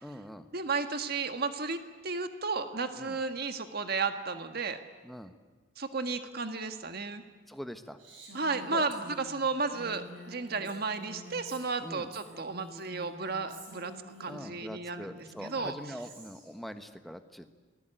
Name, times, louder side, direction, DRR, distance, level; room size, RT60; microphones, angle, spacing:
voice 1, 0.0-0.5 3.0-3.2 5.0-5.3 7.5-8.0 8.7-8.9 11.8-12.1 14.3-17.5, equal, ahead, 8 dB, 1.3 m, -43 dB
voice 2, 0.5-4.8 5.8-7.2 8.3-13.9 14.2-15.7, right 4 dB, 50° right, 8 dB, 1.6 m, -33 dB
Female speech woman speaking, 8.0-14.3 15.2-16.5, right 1 dB, 65° right, 7.5 m, -49 dB
28.0 x 20.0 x 9.1 m, 1.3 s
head